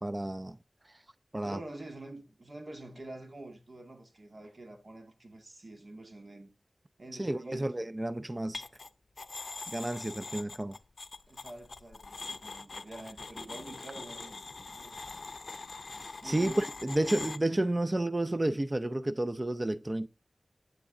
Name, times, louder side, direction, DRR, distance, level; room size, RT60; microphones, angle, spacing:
voice 1, 0.0-0.6 1.3-1.6 7.2-8.6 9.7-10.7 16.2-20.1, right 1 dB, 30° right, 0.5 m, -31 dB
voice 2, 1.4-6.5 7.0-7.8 11.3-14.4 14.7-15.0 16.0-16.7 17.0-17.2, right 2 dB, 55° right, 1.9 m, -47 dB
sound 1, 8.5-8.9 9.2-17.4, left 3 dB, 70° left, 0.5 m, -43 dB
9.1 x 8.3 x 3.7 m
wide cardioid pair, 55°, 0 cm